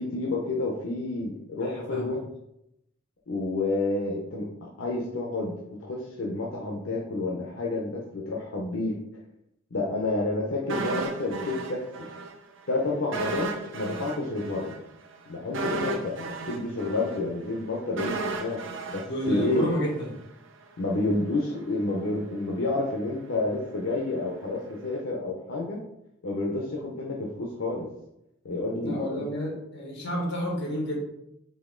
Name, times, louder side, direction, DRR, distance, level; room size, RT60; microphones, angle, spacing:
voice 1, 0.0-2.2 3.3-5.5 5.8-9.0 9.7-11.8 12.7-14.7 15.3-18.6 18.9-19.7 20.8-25.8 26.2-27.9 28.4-29.2, left 2 dB, 90° left, -2 dB, 0.7 m, -29 dB
voice 2, 1.6-2.2 19.0-20.1 28.8-31.0, equal, 65° left, -1 dB, 1.5 m, -31 dB
sound 1, 10.7-12.3 12.6-12.7 13.1-20.2 20.5-20.6, right 3 dB, 70° right, 0.6 m, -34 dB
4.3 x 3.0 x 3.7 m, 0.83 s
head